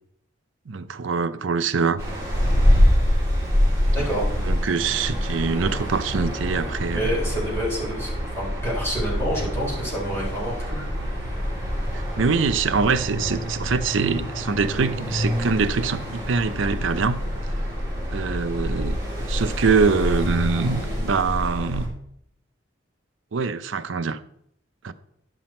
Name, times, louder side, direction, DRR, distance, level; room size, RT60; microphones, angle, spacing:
voice 1, 0.7-2.0 4.4-7.1 11.9-17.2 18.1-21.9 23.3-24.2 24.8-24.9, right 5 dB, 85° right, 0.5 m, -24 dB
sound 1, 2.0-21.9, equal, 15° right, 3.6 m, -25 dB
voice 2, 3.9-4.3 6.9-10.9 11.2-11.5, equal, 15° left, 3.6 m, -28 dB
11.5 x 6.1 x 4.3 m
head